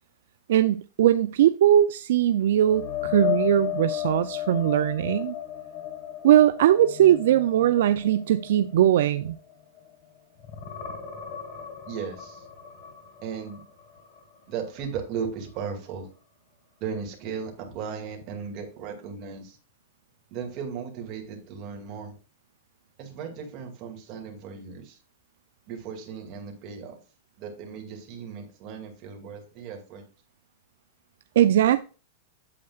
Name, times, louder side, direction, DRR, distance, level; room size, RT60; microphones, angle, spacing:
voice 1, 0.5-5.4 6.2-9.4 31.4-31.8, right 11 dB, 70° right, 0.4 m, -20 dB
sound 1, 2.6-10.0 10.4-14.3 14.6-14.9 18.2-18.3, left 11 dB, 35° left, 1.6 m, -34 dB
voice 2, 11.9-12.5 13.2-13.6 14.5-16.1 16.8-19.6 20.3-22.2 23.0-25.0 25.7-27.0 27.4-30.0, right 6 dB, 35° right, 2.2 m, -36 dB
8.6 x 7.7 x 2.4 m
supercardioid pair, 160°, 0 cm